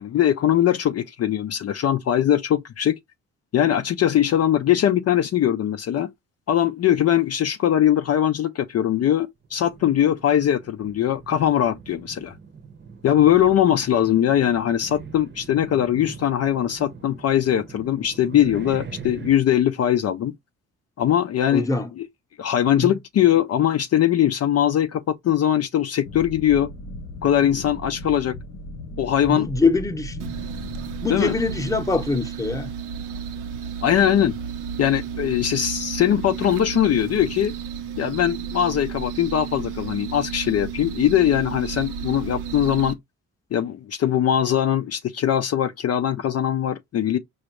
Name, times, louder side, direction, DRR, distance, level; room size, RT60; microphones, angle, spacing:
voice 1, 0.0-3.0 3.5-6.1 6.5-12.3 13.0-20.3 21.0-21.7 22.0-22.1 22.4-26.7 27.2-28.3 29.0-29.5 31.1-31.3 33.8-34.4 34.8-37.5 38.0-43.0 43.5-47.2, left 10 dB, 55° left, 0.5 m, -21 dB
sound 1, 9.4-19.3, right 6 dB, 35° right, 0.8 m, -41 dB
voice 2, 21.5-21.9 22.8-22.9 29.3-30.3 31.0-32.7, left 3 dB, 10° left, 0.8 m, -23 dB
sound 2, 26.0-31.6, left 1 dB, 85° left, 0.9 m, -37 dB
sound 3, 30.2-42.9, right 7 dB, 85° right, 0.7 m, -32 dB
5.1 x 2.4 x 2.9 m
cardioid pair, 80°, 31 cm